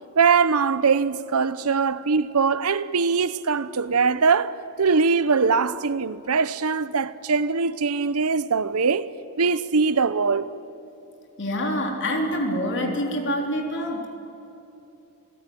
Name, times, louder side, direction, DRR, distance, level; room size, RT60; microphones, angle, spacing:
voice 1, 0.2-9.1 9.4-10.5, right 5 dB, 80° right, 0.8 m, -22 dB
voice 2, 11.4-14.1, equal, 55° left, 3.3 m, -26 dB
28.0 x 17.0 x 9.3 m
head